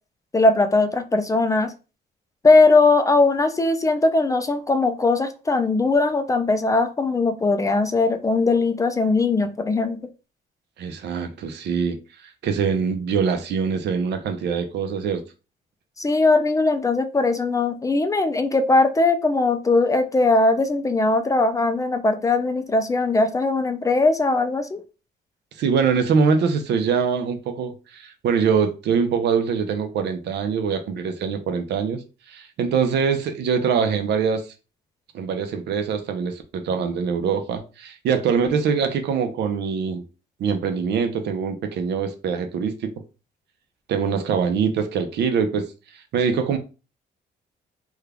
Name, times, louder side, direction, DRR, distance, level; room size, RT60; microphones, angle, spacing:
voice 1, 0.3-1.7 2.4-10.0 16.0-24.8, left 3 dB, 20° left, 0.4 m, -20 dB
voice 2, 10.8-12.0 12.2-15.2 25.6-32.0 32.3-34.5 35.1-40.0 40.4-42.9 43.9-45.7 46.1-46.6, right 6 dB, 75° right, 0.7 m, -23 dB
3.6 x 2.3 x 3.4 m
cardioid pair, 140°, 18 cm